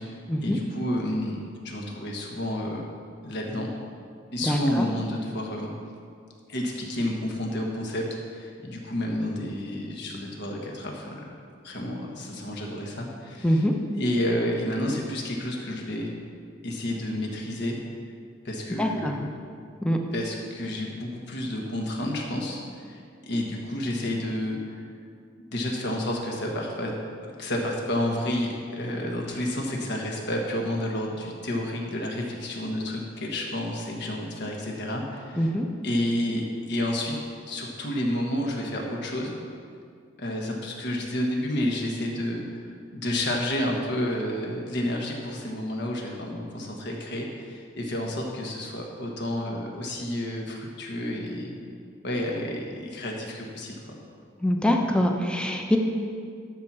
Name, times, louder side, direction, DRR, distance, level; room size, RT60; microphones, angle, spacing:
voice 1, 0.4-1.4 1.6-2.8 3.2-3.7 4.3-5.7 6.5-11.2 11.6-13.6 13.9-16.1 16.6-17.8 18.4-19.3 20.1-24.6 25.5-26.9 27.2-35.5 35.8-37.2 37.5-39.3 40.2-51.5 52.0-53.9, left 1 dB, 60° left, 0 dB, 1.4 m, -30 dB
voice 2, 4.5-4.9 13.4-13.7 18.8-19.1 19.8-20.0 35.4-35.7 54.4-55.8, left 1 dB, 5° left, 2 dB, 0.7 m, -24 dB
12.5 x 4.4 x 6.2 m, 2.2 s
head